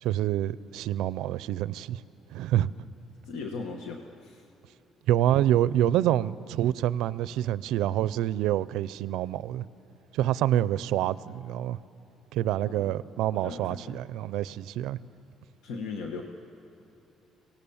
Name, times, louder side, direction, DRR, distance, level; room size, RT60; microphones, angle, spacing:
voice 1, 0.0-2.0 2.3-2.7 5.1-9.7 10.1-11.8 12.3-15.0, right 12 dB, 85° right, 18 dB, 0.4 m, -27 dB
voice 2, 3.2-4.5 12.6-13.0 13.3-14.0 15.6-16.2, left 4 dB, 80° left, 3 dB, 1.3 m, -38 dB
24.5 x 18.0 x 7.2 m, 3.0 s
cardioid pair, 160°, 0 cm